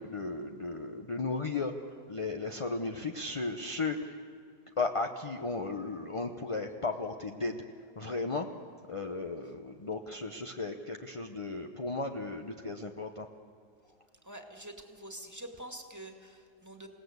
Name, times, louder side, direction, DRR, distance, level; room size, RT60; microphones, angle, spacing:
voice 1, 0.0-1.7 2.1-4.2 4.8-7.6 8.0-8.5 8.9-13.3, left 3 dB, 30° left, 4 dB, 0.6 m, -35 dB
voice 2, 14.2-16.9, right 1 dB, 10° right, 4 dB, 2.0 m, -46 dB
27.5 x 18.0 x 8.1 m, 2.4 s
omnidirectional pair, 1.8 m